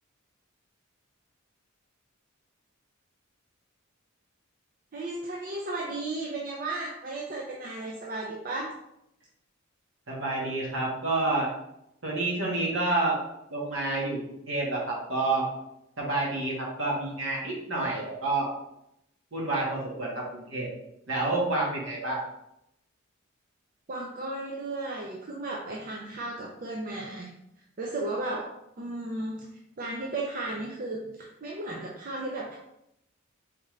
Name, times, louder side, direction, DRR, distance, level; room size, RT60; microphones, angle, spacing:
voice 1, 4.9-8.8 23.9-27.3 27.8-32.6, right 2 dB, 45° right, -1 dB, 0.5 m, -35 dB
voice 2, 10.1-11.5 12.0-13.2 13.5-14.2 14.4-15.4 16.0-18.5 19.3-20.7 21.1-22.2, right 2 dB, 65° right, -3 dB, 1.5 m, -28 dB
4.4 x 3.6 x 3.2 m, 0.80 s
head